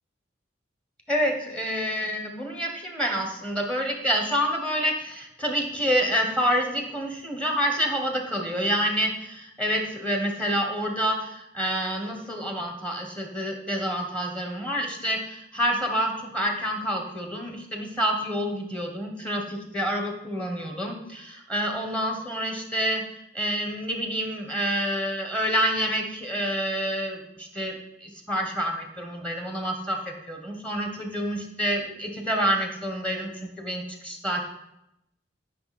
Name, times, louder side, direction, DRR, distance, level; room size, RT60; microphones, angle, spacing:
voice 1, 1.1-23.0 23.3-27.7 28.0-34.4, equal, 5° left, 2 dB, 1.4 m, -28 dB
12.0 x 5.7 x 4.3 m, 0.83 s
head